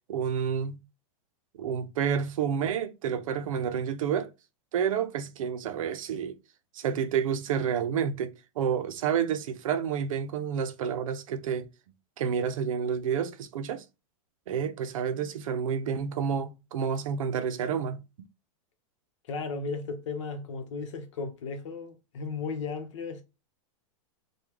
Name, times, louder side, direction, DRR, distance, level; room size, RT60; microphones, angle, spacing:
voice 1, 0.1-0.8 1.6-4.3 4.7-6.4 6.7-11.7 12.2-13.8 14.5-18.0, right 7 dB, 70° right, 0.6 m, -29 dB
voice 2, 19.2-23.2, left 4 dB, 60° left, 1.0 m, -35 dB
3.5 x 2.3 x 3.0 m
supercardioid pair, 175°, 18 cm